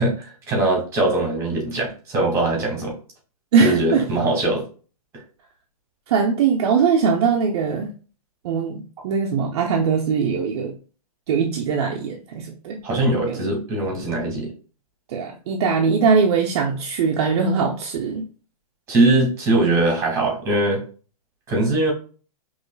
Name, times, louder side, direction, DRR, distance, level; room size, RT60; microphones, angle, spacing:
voice 1, 0.0-3.0 3.6-4.7 5.1-5.2 12.8-14.5 18.9-20.8 21.5-21.9, right 2 dB, 15° right, 0 dB, 1.8 m, -21 dB
voice 2, 3.5-4.1 6.1-7.9 8.4-10.7 11.3-12.8 13.3-13.4 15.1-18.2, right 5 dB, 45° right, 1 dB, 0.6 m, -21 dB
5.2 x 3.1 x 2.2 m, 0.37 s
hypercardioid pair, 155°, 19 cm